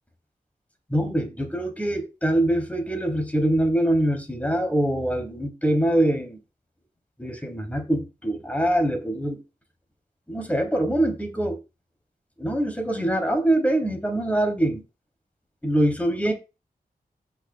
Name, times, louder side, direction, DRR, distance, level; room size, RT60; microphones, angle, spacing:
voice 1, 0.9-6.4 7.2-9.4 10.3-11.6 12.4-14.8 15.6-16.3, right 1 dB, 10° left, 3.1 m, -24 dB
17.0 x 6.1 x 2.3 m
wide cardioid pair, 110°, 16 cm